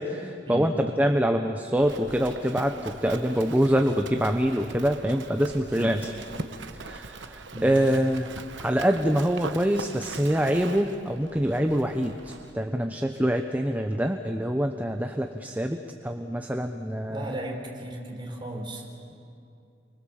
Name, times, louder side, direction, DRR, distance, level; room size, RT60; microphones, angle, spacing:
voice 1, 0.0-6.1 6.7-8.3 8.6-17.3, equal, 10° right, 5 dB, 0.9 m, -25 dB
Livestock farm animals working animals, 1.8-12.6, right 3 dB, 90° right, 1.1 m, -41 dB
voice 2, 7.5-7.9 17.1-19.1, right 1 dB, 25° right, 1 dB, 4.2 m, -36 dB
29.0 x 24.5 x 7.5 m, 2.5 s
head